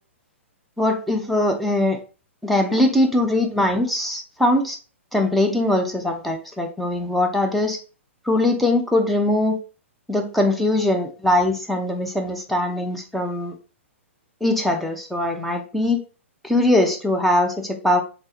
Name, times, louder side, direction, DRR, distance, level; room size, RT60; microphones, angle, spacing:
voice 1, 0.8-2.0 2.4-4.8 5.1-7.8 8.3-9.6 10.1-13.5 14.4-16.0 16.4-18.0, left 1 dB, ahead, 3 dB, 0.8 m, -21 dB
4.5 x 3.4 x 2.9 m, 0.34 s
figure-of-eight pair, 115°, 7 cm